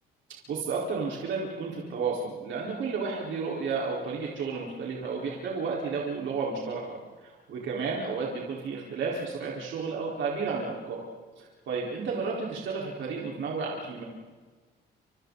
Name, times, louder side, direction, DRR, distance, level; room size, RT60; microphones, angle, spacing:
voice 1, 0.3-11.0 11.4-14.0, right 4 dB, 70° right, -3 dB, 4.6 m, -32 dB
29.5 x 27.5 x 4.1 m, 1.4 s
cardioid pair, 90°, 20 cm